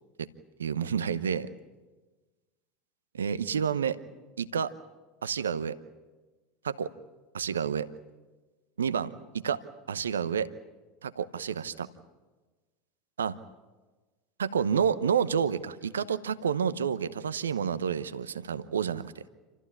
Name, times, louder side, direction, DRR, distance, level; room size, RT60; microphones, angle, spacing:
voice 1, 0.6-1.5 3.1-4.0 4.4-4.7 5.2-5.8 6.6-6.9 7.3-7.9 8.8-9.6 9.9-10.5 11.0-11.9 13.2-13.4 14.4-19.1, right 7 dB, 80° right, 14 dB, 0.9 m, -29 dB
28.0 x 14.0 x 9.9 m, 1.3 s
figure-of-eight pair, 80°, 0 cm